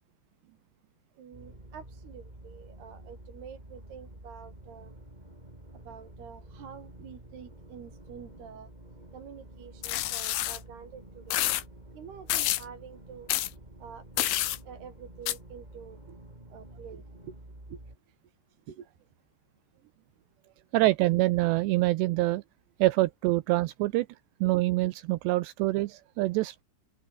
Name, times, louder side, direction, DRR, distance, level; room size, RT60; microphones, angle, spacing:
voice 1, 1.2-5.0 5.8-8.7 9.1-11.4 11.9-13.3 13.8-16.2 16.5-17.3 17.7-17.8 18.7-18.9, right 7 dB, 60° right, 5.0 m, -47 dB
sound 1, 1.3-18.0, right 1 dB, 10° right, 4.8 m, -49 dB
sound 2, 9.8-10.6 11.3-11.6 12.3-12.6 13.3-13.5 14.2-14.6 15.3-15.4, left 15 dB, 80° left, 3.8 m, -28 dB
voice 2, 20.7-22.4 22.8-24.1 24.4-26.6, right 19 dB, 80° right, 2.6 m, -25 dB
open air
omnidirectional pair, 5.3 m